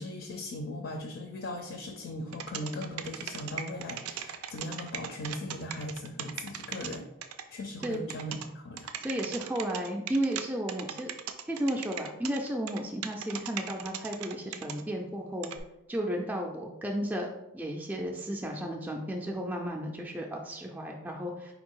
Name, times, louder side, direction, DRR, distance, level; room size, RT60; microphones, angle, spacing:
voice 1, 0.0-7.1 7.5-8.9, left 1 dB, 55° left, 4 dB, 0.4 m, -38 dB
sound 1, 2.3-7.4 7.8-8.5 8.8-10.4 10.7-14.8 15.4-15.6, right 9 dB, 90° right, 0.4 m, -38 dB
voice 2, 9.0-11.1 11.4-15.5 15.9-21.5, right 1 dB, 10° right, 0 dB, 0.3 m, -33 dB
3.9 x 2.6 x 4.5 m, 0.88 s
head